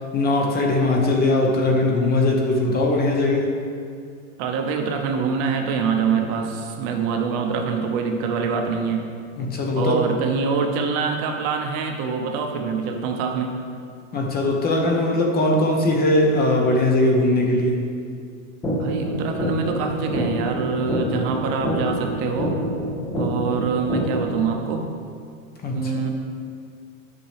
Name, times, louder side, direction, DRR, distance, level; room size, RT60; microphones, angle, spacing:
voice 1, 0.1-3.5 9.4-10.0 14.1-17.8 25.6-25.8, left 2 dB, 25° left, 1 dB, 0.9 m, -20 dB
voice 2, 4.4-9.1 9.7-13.5 18.7-22.5 23.2-24.8 25.7-26.1, right 5 dB, 45° right, 4 dB, 0.8 m, -25 dB
sound 1, 18.6-24.6, equal, 5° left, 0.4 m, -27 dB
9.4 x 5.7 x 3.4 m, 2.2 s
supercardioid pair, 130°, 41 cm